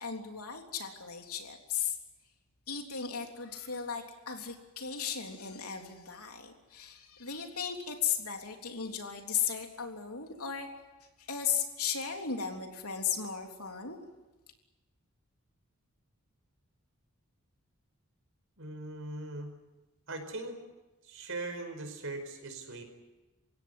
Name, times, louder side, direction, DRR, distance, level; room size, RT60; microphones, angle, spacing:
voice 1, 0.0-2.0 2.7-10.7 11.2-14.0, left 7 dB, 85° left, 3 dB, 3.5 m, -36 dB
voice 2, 18.6-19.5 20.1-20.6 21.0-22.8, right 2 dB, 65° right, 6 dB, 5.0 m, -40 dB
29.0 x 16.5 x 9.7 m, 1.1 s
head